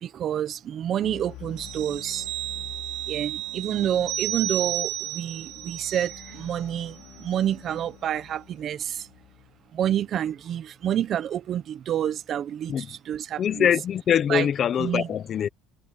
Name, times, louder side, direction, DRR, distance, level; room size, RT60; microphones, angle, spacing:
voice 1, 0.0-2.3 3.1-9.1 9.7-13.7 14.3-14.5 14.8-15.1, right 10 dB, 40° right, 0.7 m, -28 dB
sound 1, 0.8-10.9, left 15 dB, 60° left, 2.4 m, -47 dB
sound 2, 1.6-6.7 7.0-7.2, right 17 dB, 75° right, 1.7 m, -33 dB
voice 2, 13.4-15.5, left 9 dB, 35° left, 0.7 m, -23 dB
cardioid pair, 155°, 0 cm